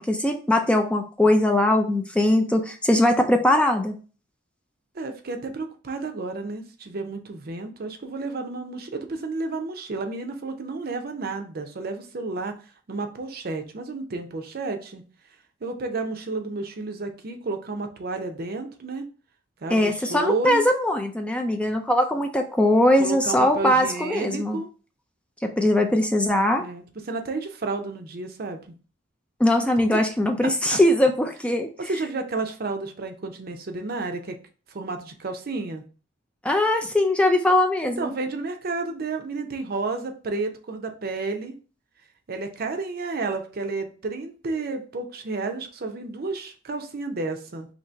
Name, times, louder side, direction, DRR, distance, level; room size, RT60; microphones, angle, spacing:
voice 1, 0.0-3.9 19.7-24.6 25.4-26.6 29.4-31.7 36.4-38.1, left 1 dB, 5° left, 3 dB, 0.3 m, -21 dB
voice 2, 4.9-12.5 12.9-15.0 15.6-19.0 19.6-20.6 23.0-24.7 26.6-28.7 30.4-30.8 31.8-34.4 34.7-35.8 38.0-41.5 42.3-47.7, right 3 dB, 50° right, 5 dB, 0.6 m, -31 dB
2.8 x 2.7 x 4.3 m, 0.38 s
head